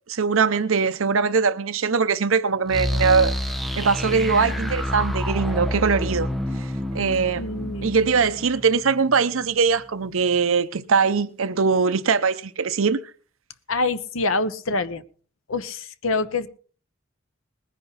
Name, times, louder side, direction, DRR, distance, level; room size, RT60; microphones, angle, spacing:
voice 1, 0.0-3.3 3.8-6.3 6.6-6.7 6.9-7.5 7.8-13.0, right 5 dB, 85° right, 0.7 m, -21 dB
sound 1, 2.7-9.5, left 1 dB, ahead, 1.0 m, -28 dB
voice 2, 7.4-7.9 13.7-15.0 15.5-16.5, left 3 dB, 90° left, 1.0 m, -26 dB
20.0 x 10.5 x 4.1 m
head